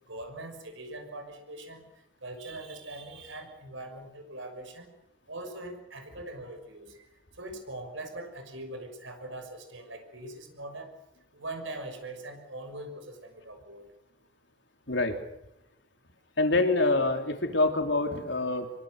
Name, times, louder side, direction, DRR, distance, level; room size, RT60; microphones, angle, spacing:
voice 1, 0.1-1.8 2.2-4.9 5.3-7.0 7.4-10.9 11.3-13.9, right 2 dB, 90° right, 6 dB, 6.2 m, -42 dB
voice 2, 14.9-15.2 16.4-18.7, left 2 dB, 70° left, 5 dB, 3.6 m, -26 dB
25.0 x 23.5 x 6.7 m, 0.87 s
head